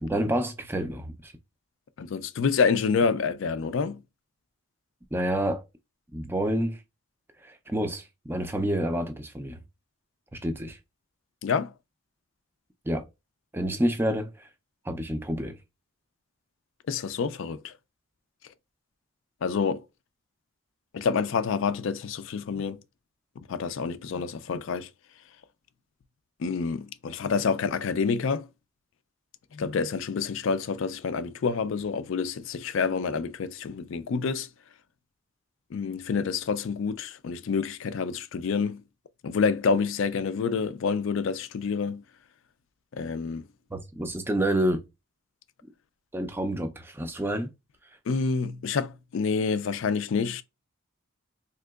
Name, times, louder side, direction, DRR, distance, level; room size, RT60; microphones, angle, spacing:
voice 1, 0.0-1.3 5.1-5.6 6.1-6.8 7.4-9.6 10.3-10.8 12.9-13.1 13.5-14.5 14.8-15.6 43.7-44.8 46.1-47.5, right 1 dB, 10° right, 0.4 m, -28 dB
voice 2, 2.0-4.0 11.4-11.7 16.9-17.7 19.4-19.8 20.9-22.8 23.5-24.9 26.4-28.5 29.5-34.5 35.7-38.8 39.2-42.0 42.9-43.5 48.1-50.4, left 5 dB, 60° left, 0.3 m, -28 dB
3.5 x 2.9 x 2.3 m
head